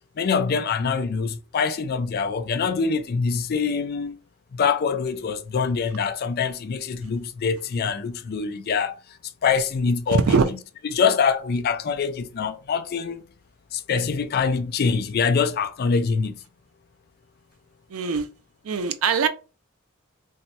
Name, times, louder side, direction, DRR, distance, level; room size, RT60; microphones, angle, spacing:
voice 1, 0.2-4.2 4.5-9.0 9.4-10.2 10.9-13.2 13.7-16.3, left 5 dB, 45° left, 0.4 m, -24 dB
voice 2, 10.1-10.5 17.9-18.3 18.6-19.3, right 5 dB, 80° right, 0.5 m, -21 dB
2.7 x 2.2 x 4.0 m
head